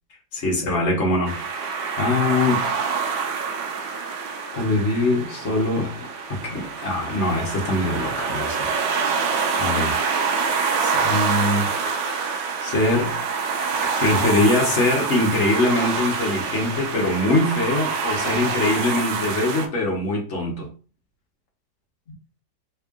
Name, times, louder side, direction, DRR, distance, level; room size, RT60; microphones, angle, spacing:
voice 1, 0.3-1.4 2.0-2.6 4.5-8.8 9.6-10.0 10.8-11.7 12.6-13.2 14.0-20.7, left 2 dB, 50° left, 1.1 m, -23 dB
sound 1, 1.3-19.7, right 5 dB, 75° right, 1.3 m, -26 dB
3.5 x 2.4 x 3.5 m
omnidirectional pair, 2.0 m